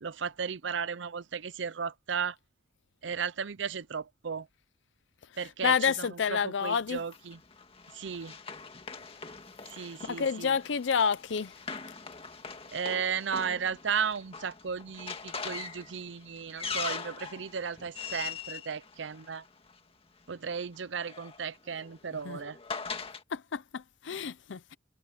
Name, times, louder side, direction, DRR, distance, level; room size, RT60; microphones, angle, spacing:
voice 1, 0.0-2.4 3.0-4.5 5.4-7.4 7.9-8.4 9.6-10.5 12.7-19.4 20.3-22.6, right 6 dB, 70° right, 0.6 m, -35 dB
voice 2, 5.6-7.0 10.0-11.5 22.3-22.4 23.3-24.7, left 6 dB, 70° left, 0.5 m, -29 dB
Run, 7.1-19.7 20.7-23.2, left 5 dB, 30° left, 1.9 m, -42 dB
head